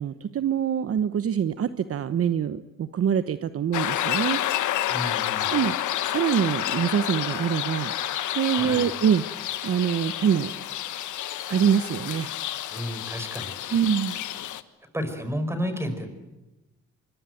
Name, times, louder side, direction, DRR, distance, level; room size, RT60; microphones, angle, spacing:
voice 1, 0.0-4.4 5.5-5.7 6.1-7.9 8.3-10.5 11.5-12.3 13.7-14.2, right 8 dB, 50° right, 12 dB, 1.0 m, -25 dB
sound 1, 3.7-14.6, left 12 dB, 80° left, 1.4 m, -30 dB
voice 2, 4.9-5.5 8.5-8.9 12.7-13.6 14.9-16.1, equal, 10° right, 9 dB, 5.2 m, -31 dB
24.5 x 22.5 x 9.2 m, 1.1 s
cardioid pair, 90°, 30 cm